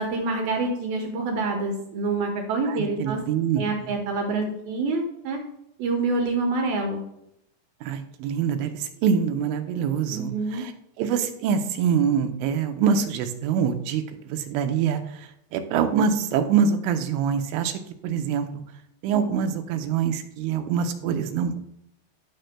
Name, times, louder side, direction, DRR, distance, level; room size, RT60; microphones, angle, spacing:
voice 1, 0.0-3.2 3.6-5.4 5.8-7.0 10.1-10.7, right 3 dB, 70° right, 1 dB, 2.4 m, -26 dB
voice 2, 2.7-3.9 7.8-10.7 11.0-18.5 19.0-21.6, right 7 dB, 90° right, 6 dB, 3.3 m, -25 dB
16.0 x 6.5 x 2.2 m, 0.77 s
omnidirectional pair, 5.4 m